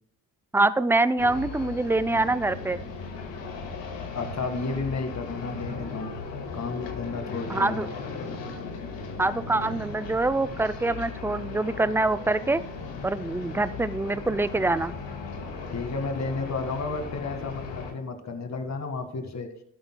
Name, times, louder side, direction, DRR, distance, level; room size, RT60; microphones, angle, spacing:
voice 1, 0.5-2.8 7.5-7.9 9.2-12.6 13.0-14.9, right 2 dB, 5° right, 15 dB, 0.4 m, -25 dB
sound 1, 1.2-17.9, left 4 dB, 70° left, 2.0 m, -37 dB
voice 2, 4.1-6.2 6.5-7.9 15.7-19.5, left 3 dB, 35° left, 7 dB, 1.8 m, -32 dB
12.0 x 9.1 x 2.2 m, 0.73 s
hypercardioid pair, 55°, 45 cm